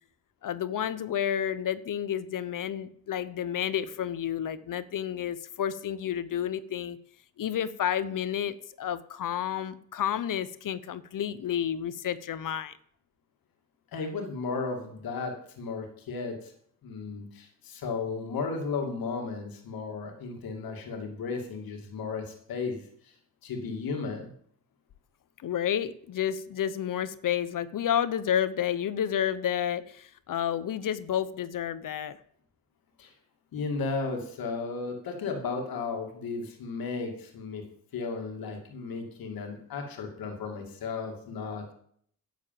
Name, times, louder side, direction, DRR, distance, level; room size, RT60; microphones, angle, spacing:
voice 1, 0.4-7.0 7.4-12.8 25.4-32.2, left 9 dB, 65° left, 15 dB, 0.9 m, -30 dB
voice 2, 13.9-16.5 16.8-23.1 23.4-24.3 33.0-33.1 33.5-37.6 37.9-41.6, left 4 dB, 85° left, 3 dB, 2.5 m, -34 dB
11.0 x 7.4 x 7.5 m, 0.64 s
cardioid pair, 85°, 35 cm